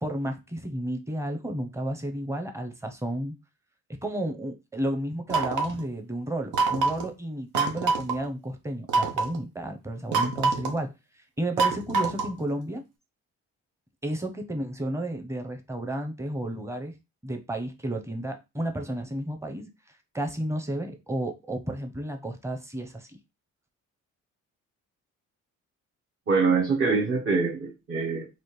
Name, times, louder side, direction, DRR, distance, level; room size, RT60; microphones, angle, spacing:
voice 1, 0.0-3.3 4.0-10.9 11.4-12.8 14.0-17.0 17.2-19.7 20.1-23.1, right 1 dB, 10° right, 5 dB, 0.8 m, -32 dB
sound 1, 5.3-5.8 6.5-7.1 7.5-8.2 8.9-9.4 10.1-10.8 11.6-12.4, right 4 dB, 90° right, 0.8 m, -25 dB
voice 2, 26.3-28.3, right 4 dB, 45° right, -1 dB, 1.0 m, -24 dB
4.2 x 2.5 x 3.2 m, 0.25 s
cardioid pair, 90°, 30 cm